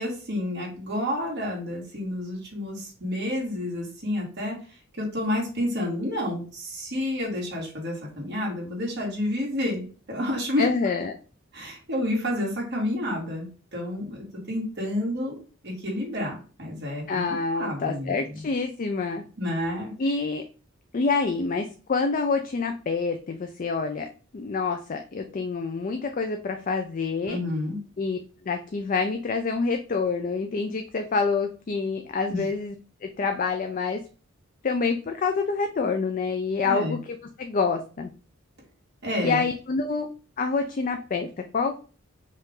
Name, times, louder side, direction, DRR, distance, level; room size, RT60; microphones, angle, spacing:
voice 1, 0.0-4.6 5.0-10.7 11.5-15.4 15.6-18.4 19.4-19.9 27.3-27.8 32.3-32.4 36.6-37.0 39.0-39.4, left 1 dB, 55° right, -2 dB, 2.2 m, -30 dB
voice 2, 10.6-11.2 17.1-19.2 20.0-20.4 20.9-27.4 28.0-28.2 28.4-32.7 33.0-34.0 34.6-38.1 39.2-40.1 40.4-41.8, left 4 dB, 40° left, 5 dB, 0.4 m, -27 dB
5.3 x 2.5 x 3.7 m, 0.37 s
head